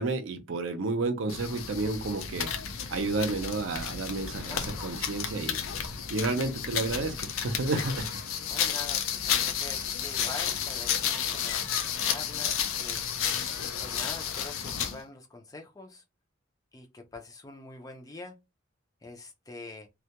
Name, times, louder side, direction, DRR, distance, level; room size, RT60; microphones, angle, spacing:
voice 1, 0.0-2.5 2.9-5.6 6.1-8.2, right 3 dB, 70° right, 0.5 m, -31 dB
sound 1, 1.3-15.0, left 8 dB, 80° left, 0.5 m, -32 dB
voice 2, 4.4-4.7 8.5-13.0 13.6-16.0 16.7-18.4 19.0-19.9, left 3 dB, 15° left, 0.4 m, -45 dB
2.2 x 2.1 x 2.8 m
head